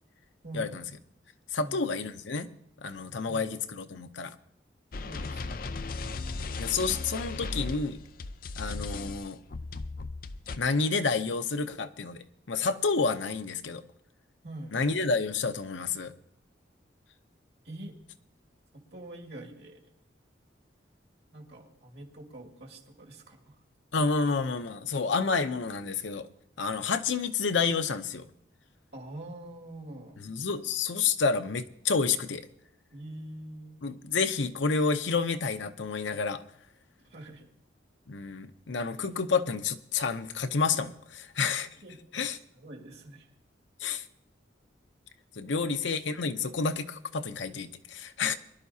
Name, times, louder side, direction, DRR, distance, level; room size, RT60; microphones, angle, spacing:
voice 1, 0.4-0.8 1.6-1.8 3.3-3.5 5.1-5.9 14.4-14.8 17.6-18.0 18.7-19.8 21.3-23.6 28.9-30.2 32.9-33.8 37.0-37.5 41.8-42.0 42.5-43.3 45.4-45.8, right 1 dB, 60° right, 1 dB, 2.1 m, -45 dB
voice 2, 1.5-2.5 2.8-4.3 6.6-8.0 8.6-9.4 10.6-13.8 14.7-16.1 23.9-26.3 26.6-28.3 30.2-32.5 33.8-36.4 38.1-41.7 42.1-42.4 43.8-44.1 45.4-48.3, left 4 dB, 80° left, 8 dB, 0.7 m, -29 dB
sound 1, 4.9-10.6, left 3 dB, 50° left, 0.5 m, -36 dB
23.0 x 11.5 x 2.8 m, 0.72 s
head